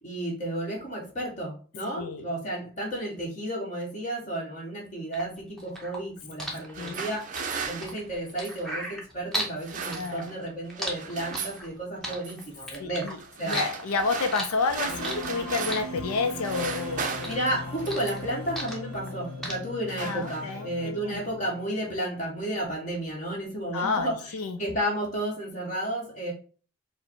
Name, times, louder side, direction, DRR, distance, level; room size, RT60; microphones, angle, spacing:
voice 1, 0.0-7.3 7.7-13.1 13.4-13.6 17.3-26.3, right 1 dB, 35° left, -2 dB, 1.4 m, -32 dB
sound 1, 5.1-9.6 9.9-11.7 12.0-13.1 13.5-15.4 15.7-16.8 17.0-19.1 19.4-19.5, equal, ahead, 0.8 m, -35 dB
sound 2, 6.5-8.7 9.4-10.5 10.7-11.6 12.1-12.5 13.2-16.0 16.3-18.4 19.1-19.4 19.7-20.7, right 5 dB, 35° right, 0.5 m, -37 dB
voice 2, 6.8-7.1 9.9-10.4 12.8-13.2 13.4-17.2 20.0-21.2 23.7-24.6, left 4 dB, 85° left, 7 dB, 0.5 m, -30 dB
sound 3, 14.9-21.9, left 2 dB, 70° left, 1.0 m, -39 dB
4.9 x 2.1 x 4.5 m, 0.39 s
head